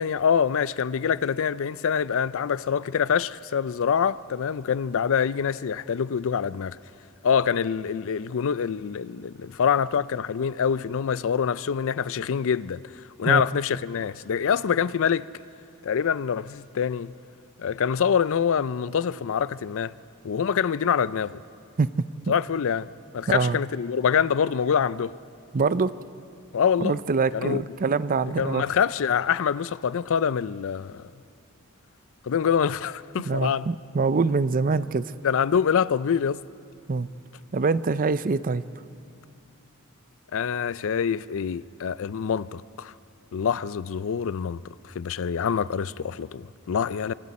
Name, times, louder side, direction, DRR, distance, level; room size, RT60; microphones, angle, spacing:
voice 1, 0.0-6.8 7.2-12.8 13.2-15.3 15.8-17.1 17.6-19.9 20.2-21.4 22.3-22.9 23.1-25.1 26.5-27.0 27.3-27.6 28.4-31.1 32.2-33.7 35.2-36.4 40.3-42.9 43.3-44.6 44.9-47.1, left 7 dB, 65° left, 0.4 m, -25 dB
voice 2, 25.5-25.9 26.8-28.6 33.3-35.1 36.9-37.1 37.5-38.6, right 4 dB, 40° right, 0.5 m, -24 dB
29.5 x 25.5 x 4.2 m
head